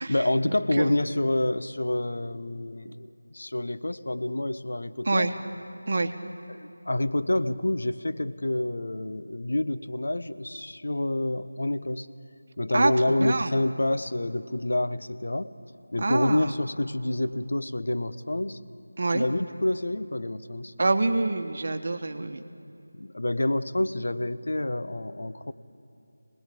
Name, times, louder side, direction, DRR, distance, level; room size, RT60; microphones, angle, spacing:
voice 1, 0.1-5.3 6.5-12.1 12.6-15.5 15.9-18.6 19.1-20.7 22.9-25.5, left 1 dB, 60° left, 11 dB, 1.2 m, -28 dB
voice 2, 13.2-13.5 16.0-16.5 19.0-19.2 20.8-22.4, right 2 dB, 45° right, 8 dB, 1.3 m, -25 dB
27.0 x 19.5 x 8.6 m, 2.7 s
figure-of-eight pair, 165°, 0 cm